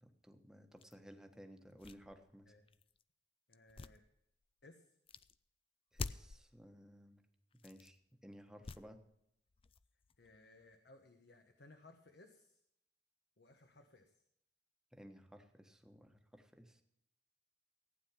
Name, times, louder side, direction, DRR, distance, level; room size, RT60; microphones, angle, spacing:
voice 1, 0.0-2.5 5.9-7.2 7.5-8.0 8.2-9.0 14.9-16.8, equal, 5° right, 5 dB, 1.3 m, -57 dB
sound 1, 0.8-1.0 1.6-3.0 3.5-4.6 5.1-5.4 5.9-6.5 7.5-8.0 8.6-9.2 9.5-10.8, left 4 dB, 30° left, 0.4 m, -48 dB
voice 2, 3.5-4.0 4.6-4.9 10.2-12.6 13.4-14.2, left 2 dB, 65° left, 6 dB, 1.2 m, -62 dB
15.5 x 9.4 x 5.9 m, 0.77 s
head